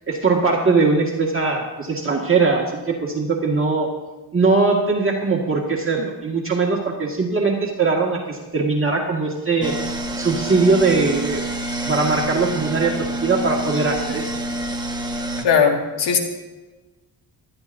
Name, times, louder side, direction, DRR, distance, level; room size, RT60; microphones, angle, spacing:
voice 1, 0.1-3.9 4.3-9.8 10.1-11.4 11.7-14.3, right 3 dB, 30° right, -1 dB, 1.8 m, -20 dB
sound 1, 9.6-15.4, right 1 dB, 10° right, 1.3 m, -27 dB
voice 2, 15.4-16.2, left 6 dB, 80° left, 2 dB, 2.0 m, -18 dB
18.5 x 12.5 x 2.6 m, 1.2 s
cardioid pair, 95°, 41 cm